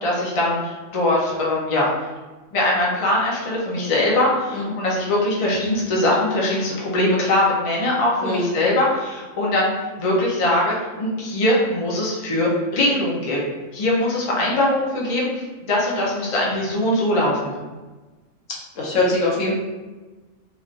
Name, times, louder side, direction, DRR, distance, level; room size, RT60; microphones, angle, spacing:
voice 1, 0.0-1.9 2.5-9.7 10.0-17.5, left 1 dB, 50° left, -4 dB, 0.4 m, -21 dB
voice 2, 18.8-19.5, left 2 dB, 75° left, -4 dB, 1.1 m, -22 dB
3.2 x 2.5 x 2.4 m, 1.2 s
omnidirectional pair, 1.4 m